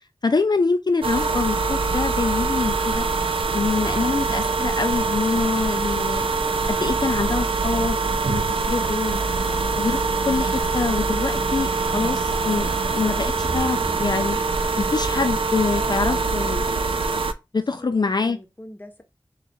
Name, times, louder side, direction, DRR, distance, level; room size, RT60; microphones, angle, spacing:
voice 1, 0.2-3.0 3.5-6.4 6.7-9.2 9.8-16.7 17.5-18.4, left 4 dB, 50° left, 0.4 m, -25 dB
sound 1, 1.0-17.3, right 4 dB, 70° right, 0.4 m, -24 dB
sound 2, 2.6-14.0, right 2 dB, 5° right, 1.5 m, -44 dB
voice 2, 17.5-19.0, left 1 dB, 20° left, 0.9 m, -44 dB
3.9 x 2.4 x 3.0 m
wide cardioid pair, 40°, 9 cm